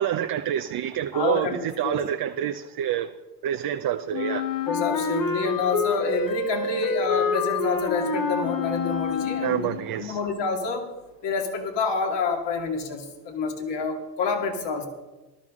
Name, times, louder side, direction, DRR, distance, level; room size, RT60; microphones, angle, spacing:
voice 1, 0.0-1.5 1.8-3.1 3.4-4.5 9.4-10.2, right 11 dB, 50° right, 0.7 m, -27 dB
voice 2, 1.1-1.6 1.8-2.0 4.7-10.9 11.2-14.9, left 4 dB, 60° left, 2.4 m, -28 dB
Wind instrument woodwind instrument, 4.1-9.9, left 4 dB, 45° left, 1.4 m, -27 dB
14.0 x 12.0 x 3.8 m
supercardioid pair, 70°, 47 cm